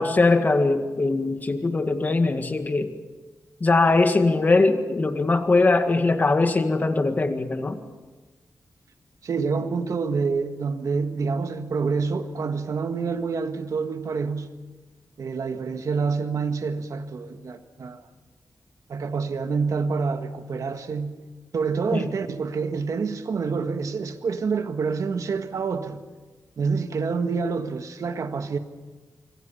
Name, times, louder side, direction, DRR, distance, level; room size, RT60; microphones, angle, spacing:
voice 1, 0.0-2.9 3.6-7.8 21.9-22.1, left 3 dB, 30° left, 1.9 m, -21 dB
voice 2, 9.2-14.5 15.2-18.0 18.9-21.2 21.5-26.0 26.6-28.6, right 5 dB, 65° right, 1.7 m, -27 dB
25.5 x 25.0 x 5.7 m
wide cardioid pair, 160°, 6 cm